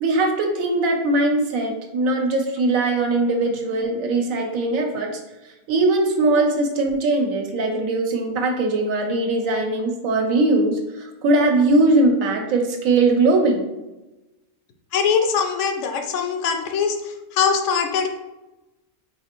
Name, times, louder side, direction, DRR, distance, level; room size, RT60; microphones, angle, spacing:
voice 1, 0.0-5.2 5.7-13.6, right 2 dB, 75° right, 2 dB, 1.0 m, -20 dB
voice 2, 14.9-18.1, left 6 dB, 65° left, 5 dB, 0.8 m, -22 dB
4.2 x 3.2 x 2.9 m, 1.0 s
omnidirectional pair, 1.5 m